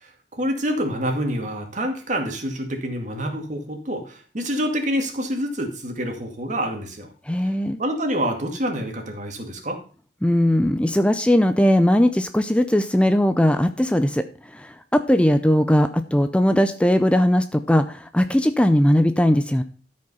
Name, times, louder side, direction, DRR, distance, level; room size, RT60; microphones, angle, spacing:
voice 1, 0.0-7.1 7.8-9.8, equal, 45° right, 4 dB, 2.3 m, -27 dB
voice 2, 7.3-7.8 10.2-14.3 14.5-19.6, equal, 5° left, 9 dB, 0.5 m, -19 dB
13.0 x 5.3 x 5.5 m, 0.40 s
head